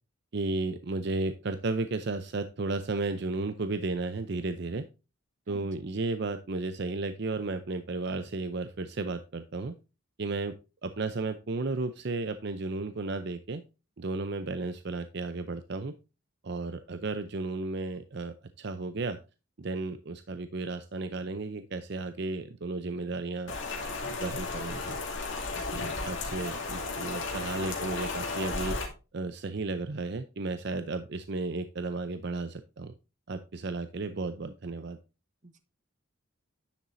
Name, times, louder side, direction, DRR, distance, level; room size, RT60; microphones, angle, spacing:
voice 1, 0.3-4.9 5.5-9.7 10.2-10.5 10.8-13.6 14.0-15.9 16.4-19.2 19.6-23.5 24.0-25.0 25.7-28.8 29.1-32.9 33.3-35.0, right 3 dB, 55° right, 10 dB, 0.6 m, -33 dB
Rain, 23.5-28.9, left 3 dB, 65° left, 2.6 m, -34 dB
voice 2, 25.5-26.1 35.4-35.6, right 2 dB, 35° right, 10 dB, 0.9 m, -49 dB
10.0 x 7.3 x 2.6 m, 0.29 s
head